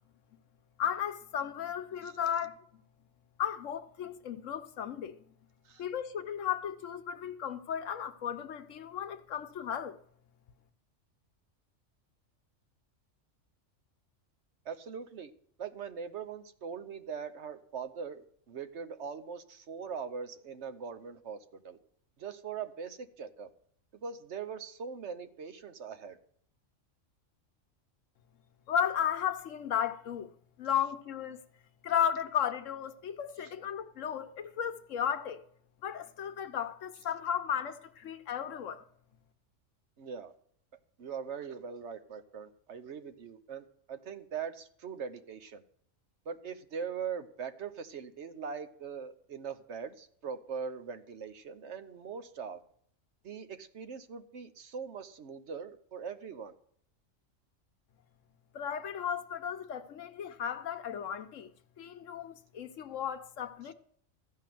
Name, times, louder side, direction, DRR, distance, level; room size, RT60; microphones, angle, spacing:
voice 1, 0.8-2.6 3.4-5.2 5.8-10.0 28.7-30.3 30.6-31.4 31.8-35.4 35.8-38.8 58.5-61.5 61.8-63.7, left 9 dB, 75° left, 1.2 m, -34 dB
voice 2, 14.6-15.3 15.6-21.8 22.2-23.5 23.9-26.2 40.0-40.3 41.0-45.6 46.3-52.6 53.2-56.5, right 6 dB, 65° right, 1.1 m, -41 dB
14.0 x 5.6 x 9.2 m
omnidirectional pair, 1.3 m